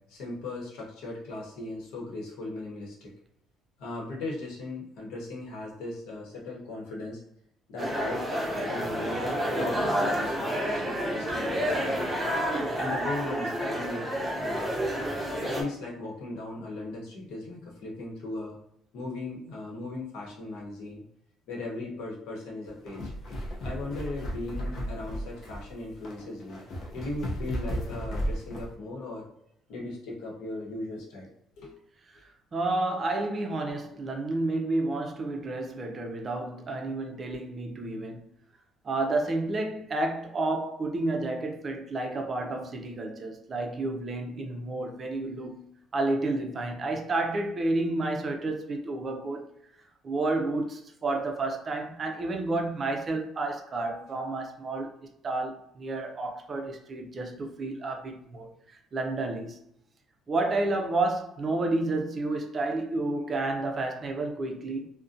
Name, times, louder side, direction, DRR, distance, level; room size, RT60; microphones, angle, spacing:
voice 1, 0.0-3.1 3.8-7.2 7.7-9.2 9.5-12.1 12.8-14.1 14.4-14.7 15.4-18.6 18.9-21.0 21.5-23.1 23.6-26.6 26.9-29.3 29.7-31.3 31.6-31.8 37.3-37.4, left 2 dB, 85° left, 0.9 m, -38 dB
sound 1, 7.8-15.6, equal, 5° right, 0.7 m, -29 dB
sound 2, 22.7-28.7, equal, 50° left, 0.5 m, -35 dB
voice 2, 32.2-38.2 38.8-49.5 50.0-55.0 55.2-59.6 60.3-64.9, right 2 dB, 30° right, 0.4 m, -30 dB
2.5 x 2.1 x 2.5 m
cardioid pair, 125°, 0 cm